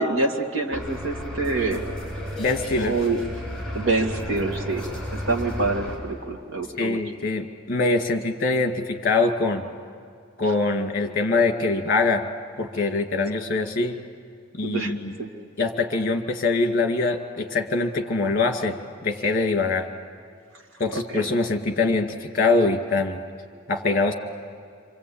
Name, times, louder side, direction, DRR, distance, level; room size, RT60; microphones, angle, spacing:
voice 1, 0.0-1.8 2.8-3.2 3.7-4.8 5.1-7.0 10.5-10.6 14.6-15.3 20.9-21.3, right 3 dB, 70° right, 2 dB, 2.3 m, -26 dB
sound 1, 0.7-6.0, left 1 dB, 5° left, 6.2 m, -33 dB
voice 2, 2.4-2.9 6.8-9.7 10.4-12.2 12.6-14.0 14.5-15.1 15.6-18.8 19.0-19.9 20.8-23.2 23.7-24.1, left 3 dB, 45° left, 5 dB, 2.1 m, -23 dB
27.5 x 24.5 x 8.7 m, 2.2 s
head